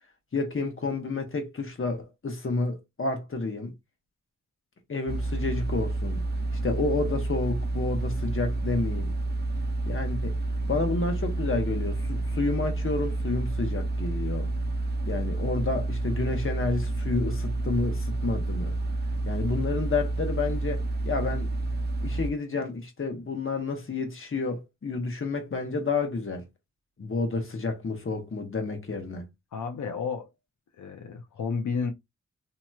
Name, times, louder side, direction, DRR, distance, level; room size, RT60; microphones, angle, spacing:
voice 1, 0.3-3.7 4.9-6.2 6.6-9.2 9.8-10.4 10.7-14.5 15.1-18.8 19.2-21.5 22.0-26.4 27.0-29.3, left 3 dB, 45° left, 1.1 m, -30 dB
sound 1, 5.1-22.3, right 2 dB, 35° right, 0.5 m, -29 dB
voice 2, 29.5-30.3 30.8-31.9, left 5 dB, 85° left, 0.6 m, -31 dB
2.9 x 2.8 x 2.3 m
wide cardioid pair, 75°, 29 cm